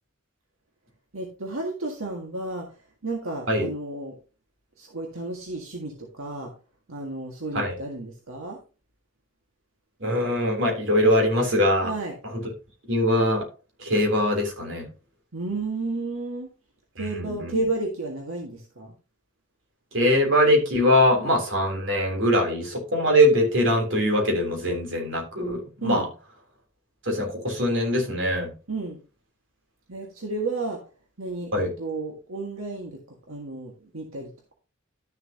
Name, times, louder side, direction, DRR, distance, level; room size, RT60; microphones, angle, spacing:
voice 1, 1.1-4.2 4.8-6.5 6.9-8.6 11.8-12.2 15.3-16.5 17.0-18.9 25.8-26.1 28.7-29.0 29.9-30.8 31.2-34.5, right 2 dB, 90° right, 1 dB, 1.8 m, -32 dB
voice 2, 10.0-11.9 12.9-13.5 13.8-14.9 17.2-17.6 19.9-26.1 27.1-28.5 31.5-31.7, equal, 65° right, 1 dB, 3.5 m, -22 dB
12.0 x 6.9 x 2.9 m, 0.34 s
head